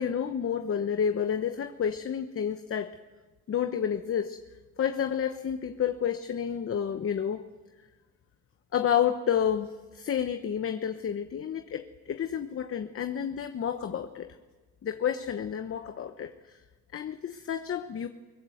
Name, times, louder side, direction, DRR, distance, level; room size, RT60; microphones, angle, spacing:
voice 1, 0.0-2.9 3.5-4.4 4.8-7.4 8.7-14.4 14.8-16.6 16.9-18.1, left 8 dB, 45° left, 8 dB, 1.1 m, -30 dB
22.0 x 20.0 x 8.0 m, 1.3 s
cardioid pair, 90°, 30 cm